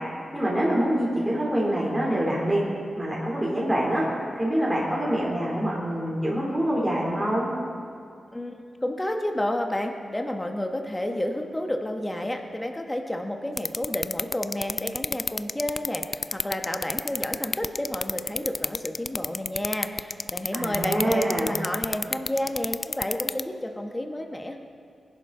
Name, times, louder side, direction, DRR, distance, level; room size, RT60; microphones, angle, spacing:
voice 1, 0.3-2.6 3.0-7.5 20.5-21.5, right 1 dB, 15° right, -5 dB, 3.0 m, -25 dB
voice 2, 8.3-24.6, left 1 dB, 15° left, 4 dB, 1.2 m, -31 dB
sound 1, 13.6-23.4, left 4 dB, 40° left, 0.3 m, -27 dB
21.5 x 10.5 x 3.8 m, 2.3 s
wide cardioid pair, 105°, 0 cm